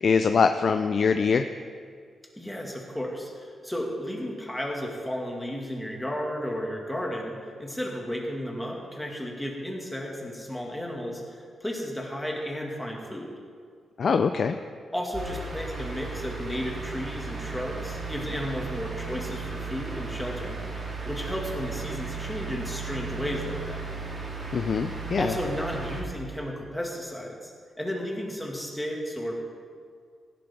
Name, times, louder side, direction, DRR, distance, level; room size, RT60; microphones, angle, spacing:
voice 1, 0.0-1.5 14.0-14.6 24.5-25.3, left 5 dB, 55° left, 8 dB, 0.4 m, -23 dB
voice 2, 2.3-13.3 14.9-20.6 21.1-23.8 25.2-29.3, equal, 5° left, -1 dB, 2.1 m, -33 dB
sound 1, 15.1-26.0, right 4 dB, 40° right, 2.6 m, -35 dB
16.0 x 11.0 x 3.7 m, 2.1 s
wide cardioid pair, 120°, 0 cm